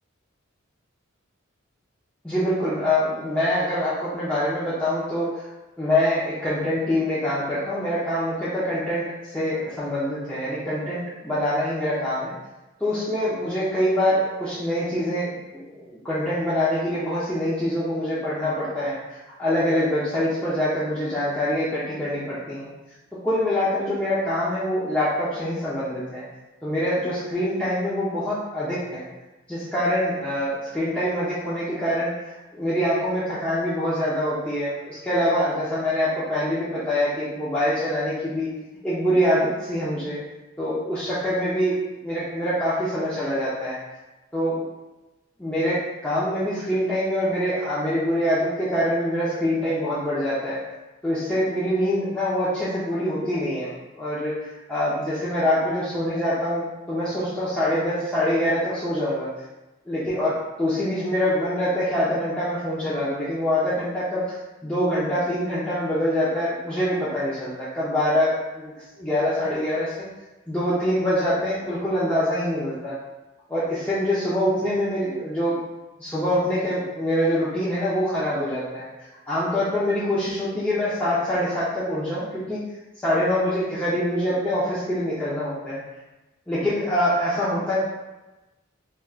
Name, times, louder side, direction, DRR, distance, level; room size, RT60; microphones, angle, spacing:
voice 1, 2.2-5.5 5.8-12.3 12.8-22.7 23.2-26.2 26.6-29.0 29.5-32.1 32.5-38.5 38.8-40.2 40.6-41.8 42.0-43.8 44.3-44.6 45.4-50.6 51.0-53.7 54.0-59.3 59.9-64.4 64.6-70.0 70.5-73.0 73.5-75.6 76.0-78.9 79.3-82.6 83.0-85.8 86.5-87.8, left 1 dB, 5° left, -11 dB, 0.6 m, -25 dB
4.6 x 2.3 x 2.3 m, 1.1 s
head